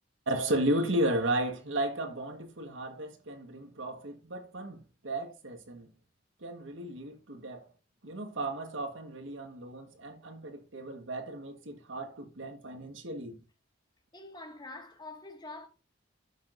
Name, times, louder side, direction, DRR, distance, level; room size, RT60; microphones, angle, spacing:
voice 1, 0.3-5.9 6.4-7.7 8.0-13.4, right 1 dB, 85° right, 1.5 m, -34 dB
voice 2, 14.1-15.7, left 2 dB, 25° left, 1.8 m, -45 dB
12.5 x 5.9 x 2.6 m
head